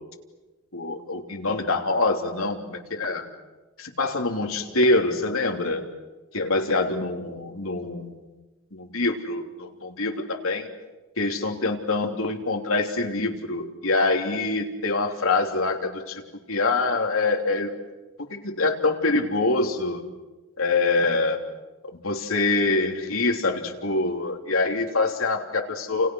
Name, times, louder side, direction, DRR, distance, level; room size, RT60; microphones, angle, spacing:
voice 1, 0.7-3.2 3.8-5.8 6.3-8.1 8.7-10.7 11.2-16.2 16.5-17.7 18.3-20.0 20.6-21.4 22.0-26.1, left 3 dB, 75° left, 3 dB, 3.2 m, -25 dB
30.0 x 29.0 x 6.3 m, 1.2 s
head